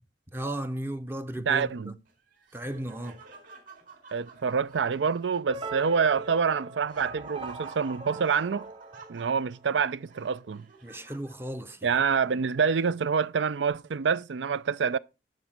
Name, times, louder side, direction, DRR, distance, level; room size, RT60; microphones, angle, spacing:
voice 1, 0.3-2.0 2.5-3.2 10.8-12.0, right 1 dB, 15° right, 0.6 m, -35 dB
voice 2, 1.5-2.0 4.1-8.7 9.1-10.6 11.8-15.0, right 6 dB, 85° right, 0.5 m, -27 dB
Laughter, 2.1-12.6, right 4 dB, 50° right, 4.2 m, -51 dB
sound 1, 5.5-9.8, right 3 dB, 30° right, 0.9 m, -41 dB
11.5 x 4.0 x 7.5 m
head